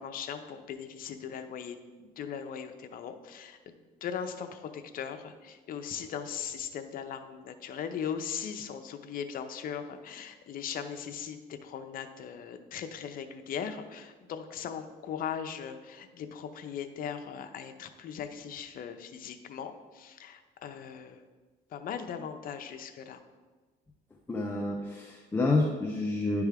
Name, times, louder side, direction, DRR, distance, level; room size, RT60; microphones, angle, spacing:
voice 1, 0.0-21.2 21.7-23.2, left 7 dB, 55° left, 7 dB, 0.6 m, -39 dB
voice 2, 24.3-26.4, left 2 dB, 15° left, 0 dB, 0.6 m, -29 dB
10.0 x 3.5 x 3.5 m, 1.3 s
cardioid pair, 110°, 17 cm